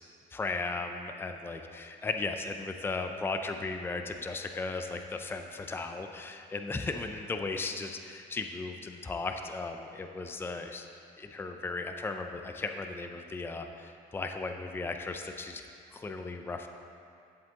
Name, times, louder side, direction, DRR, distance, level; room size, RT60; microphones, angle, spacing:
voice 1, 0.3-10.9 11.2-15.6 15.9-16.7, left 3 dB, 15° left, 5 dB, 0.5 m, -36 dB
10.5 x 7.7 x 3.6 m, 2.4 s
cardioid pair, 110°, 17 cm